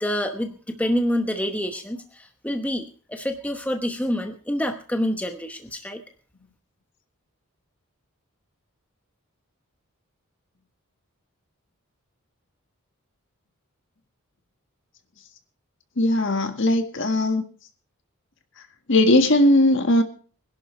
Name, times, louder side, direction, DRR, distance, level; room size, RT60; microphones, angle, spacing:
voice 1, 0.0-6.0, equal, 5° left, 5 dB, 1.0 m, -27 dB
voice 2, 16.0-17.4 18.9-20.0, left 1 dB, 55° left, 7 dB, 1.7 m, -18 dB
21.5 x 11.0 x 3.3 m, 0.41 s
head